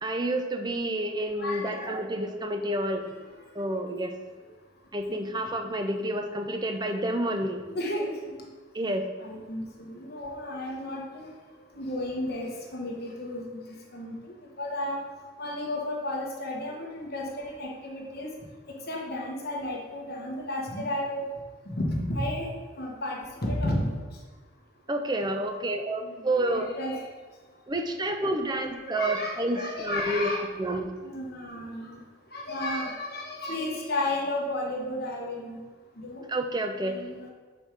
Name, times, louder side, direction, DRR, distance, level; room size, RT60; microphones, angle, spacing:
voice 1, 0.0-3.1 3.5-4.2 4.9-7.6 8.7-9.1 24.9-26.7 27.7-30.3 30.6-30.9 36.3-37.0, right 1 dB, 20° right, 5 dB, 0.5 m, -29 dB
voice 2, 1.4-2.0 7.7-8.3 9.2-11.3 11.7-13.6 13.9-15.0 15.4-18.3 18.9-21.3 21.7-22.5 22.7-24.0 25.2-25.3 26.0-27.1 28.5-30.5 31.0-32.0 32.3-35.6 36.0-36.2 36.8-37.3, left 1 dB, 50° left, -1 dB, 1.2 m, -33 dB
6.4 x 4.6 x 5.1 m, 1.4 s
head